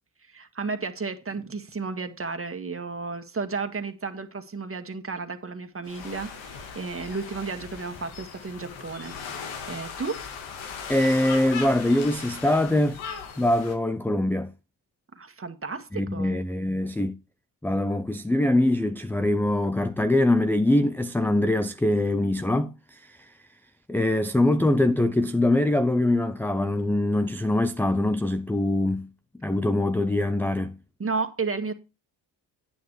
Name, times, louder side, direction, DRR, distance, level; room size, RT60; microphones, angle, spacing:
voice 1, 0.3-10.2 15.2-16.4 31.0-31.7, right 4 dB, 30° right, 1.8 m, -33 dB
sound 1, 5.8-13.7, left 6 dB, 85° left, 2.0 m, -38 dB
voice 2, 10.9-13.0 13.4-14.5 15.9-17.2 17.6-23.3 23.9-29.1 29.4-30.8, left 1 dB, 5° left, 0.5 m, -23 dB
9.7 x 9.2 x 3.2 m
supercardioid pair, 65°, 46 cm